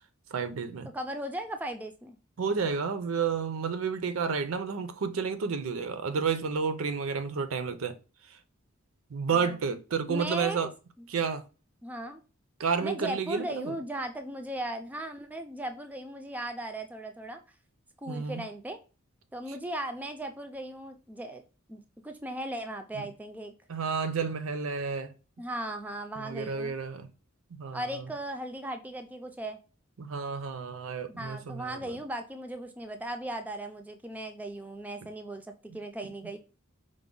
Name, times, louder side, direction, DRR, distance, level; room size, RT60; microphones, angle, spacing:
voice 1, 0.3-0.9 2.4-8.0 8.3-8.4 9.1-10.7 11.1-11.4 12.6-13.7 18.1-18.4 22.9-23.0 23.7-25.1 26.2-27.1 27.6-28.0 30.0-32.0, right 5 dB, 70° right, 0.5 m, -31 dB
voice 2, 0.9-2.2 9.3-9.6 10.1-10.7 11.8-12.2 12.8-17.4 18.0-18.8 19.3-21.4 21.7-23.5 25.4-26.7 27.7-29.6 31.1-36.4, right 1 dB, 10° right, 0.3 m, -37 dB
4.8 x 2.1 x 3.8 m
head